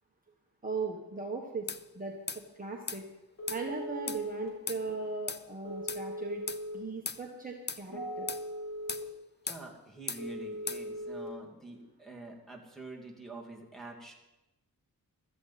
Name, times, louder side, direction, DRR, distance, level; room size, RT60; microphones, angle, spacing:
voice 1, 0.6-1.7 1.9-2.1 2.5-3.0 3.5-6.4 6.7-8.6, right 3 dB, 25° right, -1 dB, 1.3 m, -38 dB
sound 1, 1.7-1.8 2.3-2.4 2.9-3.0 3.5-3.6 4.1-4.2 4.7-4.8 5.3-5.4 5.9-6.0 6.5-6.6 7.0-7.2 7.7-7.8 8.3-8.4 8.9-9.1 9.5-9.6 10.1-10.2 10.7-10.8, left 5 dB, 30° left, 0.5 m, -37 dB
Telephone, 3.4-4.5 5.6-6.7 7.9-9.0 10.2-11.3, equal, 50° left, 4.3 m, -40 dB
voice 2, 9.4-14.1, right 2 dB, ahead, -3 dB, 2.2 m, -46 dB
16.0 x 13.0 x 4.1 m, 0.98 s
wide cardioid pair, 150°, 35 cm